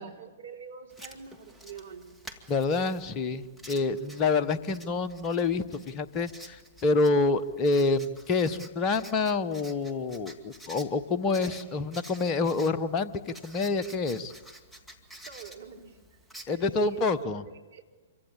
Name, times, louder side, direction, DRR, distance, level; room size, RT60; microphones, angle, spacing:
voice 1, 0.0-2.1 11.4-11.6 15.3-16.2 16.5-17.8, right 6 dB, 65° right, 2 dB, 3.6 m, -46 dB
Writing, 0.9-17.2, right 1 dB, ahead, 2.4 m, -50 dB
voice 2, 2.5-14.3 16.5-17.4, left 3 dB, 30° left, 12 dB, 1.1 m, -27 dB
27.0 x 24.5 x 8.7 m, 1.3 s
figure-of-eight pair, 110°, 0 cm